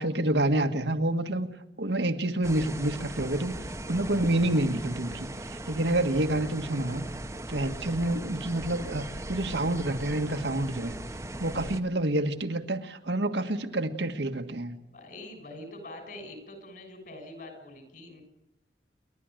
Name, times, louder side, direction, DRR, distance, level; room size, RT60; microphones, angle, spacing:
voice 1, 0.0-1.5 1.8-3.5 3.9-7.0 7.5-9.0 9.3-11.0 11.4-14.7, right 1 dB, 85° right, 6 dB, 1.7 m, -28 dB
sound 1, 2.4-11.8, right 1 dB, 15° right, 1.0 m, -38 dB
voice 2, 14.8-18.2, left 1 dB, 55° left, 5 dB, 6.6 m, -44 dB
28.5 x 12.0 x 9.2 m, 0.86 s
head